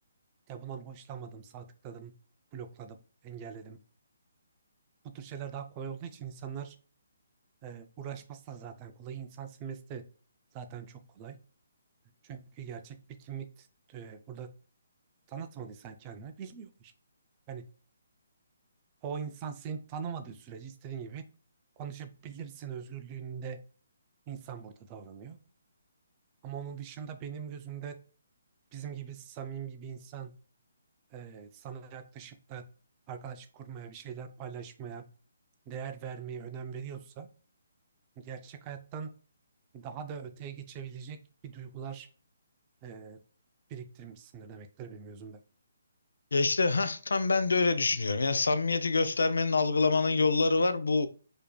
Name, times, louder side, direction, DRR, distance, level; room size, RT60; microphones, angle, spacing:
voice 1, 0.5-2.2 2.5-3.8 5.0-6.8 7.6-10.1 10.5-11.4 12.2-14.5 15.3-16.9 17.5-17.7 19.0-21.3 21.8-23.6 24.3-25.4 26.4-28.0 28.7-30.4 31.1-32.7 33.1-35.1 35.7-37.3 38.2-39.1 39.7-41.2 41.4-42.1 42.8-43.2 43.7-45.4, right 7 dB, 15° right, 0.3 m, -42 dB
voice 2, 46.3-51.1, left 3 dB, 90° left, 0.4 m, -26 dB
4.9 x 2.7 x 2.2 m
hypercardioid pair, 175°, 0 cm